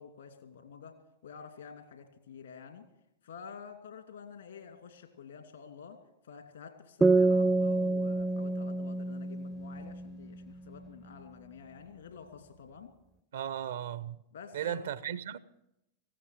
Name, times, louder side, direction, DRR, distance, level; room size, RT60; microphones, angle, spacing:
voice 1, 0.0-2.8 3.2-6.0 6.2-12.9 14.3-15.0, left 6 dB, 70° left, 2.5 m, -49 dB
sound 1, 7.0-10.5, right 2 dB, 10° right, 0.5 m, -27 dB
voice 2, 13.3-14.2 14.5-15.4, right 9 dB, 65° right, 0.6 m, -36 dB
18.0 x 15.5 x 4.7 m
figure-of-eight pair, 95°, 0 cm